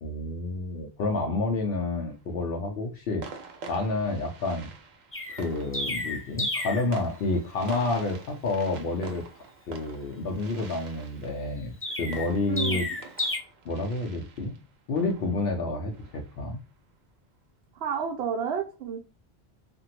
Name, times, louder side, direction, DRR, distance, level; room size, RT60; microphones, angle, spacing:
voice 1, 0.0-3.3 3.7-4.7 5.3-9.2 9.7-11.7 12.0-12.9 13.2-13.3 13.6-14.6 14.9-16.6, left 2 dB, 65° left, 1 dB, 0.8 m, -29 dB
sound 1, 1.9-2.3 3.2-16.6, right 4 dB, 55° right, 0.5 m, -47 dB
Chirp tweet, 5.1-6.9 11.8-13.4, left 2 dB, 20° left, 0.3 m, -31 dB
voice 2, 12.5-12.9 17.8-19.0, right 7 dB, 75° right, 2 dB, 0.8 m, -30 dB
2.9 x 2.5 x 2.8 m, 0.31 s
omnidirectional pair, 1.1 m